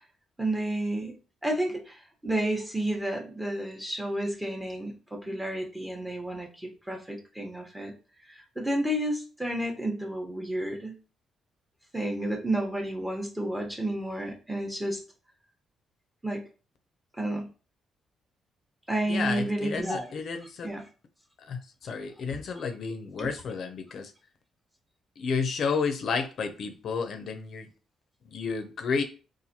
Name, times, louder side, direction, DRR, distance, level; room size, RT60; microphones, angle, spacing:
voice 1, 0.4-1.1 1.4-7.9 8.6-11.0 11.9-15.0 16.2-16.4 17.2-17.5 18.9-20.1 20.6-20.8 23.2-23.3, right 1 dB, 10° right, 1 dB, 0.9 m, -31 dB
voice 2, 19.1-20.7 21.4-24.1 25.2-27.7 28.3-29.0, left 5 dB, 60° left, 7 dB, 0.5 m, -31 dB
4.0 x 2.5 x 2.8 m, 0.35 s
cardioid pair, 90°, 0 cm